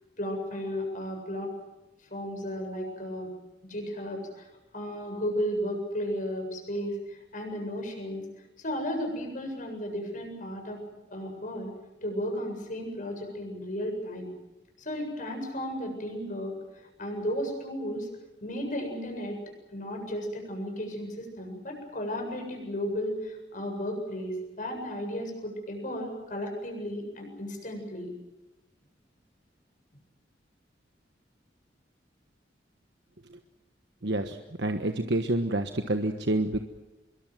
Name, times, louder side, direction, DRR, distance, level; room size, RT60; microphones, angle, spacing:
voice 1, 0.2-1.5 2.1-3.3 3.6-8.2 8.6-10.8 11.1-11.7 12.0-14.3 14.8-16.5 17.0-18.1 18.4-19.4 19.7-28.1, equal, 45° left, 3 dB, 7.8 m, -34 dB
voice 2, 34.0-36.6, right 1 dB, 75° right, 6 dB, 1.4 m, -28 dB
25.5 x 22.5 x 7.8 m, 1.0 s
head